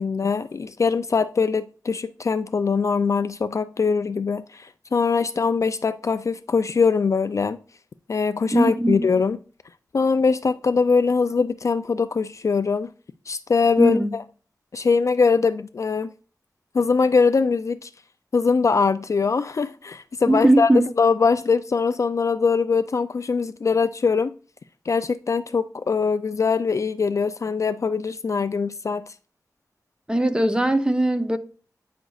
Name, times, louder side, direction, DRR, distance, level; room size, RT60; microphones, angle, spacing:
voice 1, 0.0-7.6 8.1-9.4 9.9-12.9 13.3-14.2 14.7-16.1 16.7-17.9 18.3-20.7 21.0-24.3 24.9-29.0, left 5 dB, 50° left, 0.3 m, -22 dB
voice 2, 8.5-9.1 13.8-14.1 20.3-20.9 30.1-31.4, right 1 dB, 15° right, 0.7 m, -20 dB
9.0 x 5.1 x 2.4 m
wide cardioid pair, 75°, 7 cm